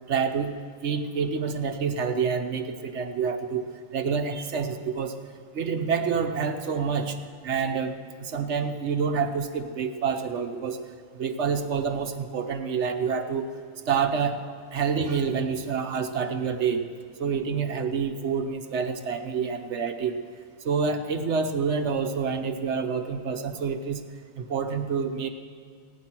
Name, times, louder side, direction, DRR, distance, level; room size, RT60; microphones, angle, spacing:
voice 1, 0.1-0.6 0.8-3.7 3.9-5.2 5.5-7.2 7.4-10.8 11.2-13.5 13.9-14.4 14.7-16.8 17.2-20.2 20.6-24.0 24.4-25.3, right 6 dB, 65° right, 7 dB, 1.1 m, -27 dB
15.5 x 9.8 x 6.0 m, 2.1 s
omnidirectional pair, 1.3 m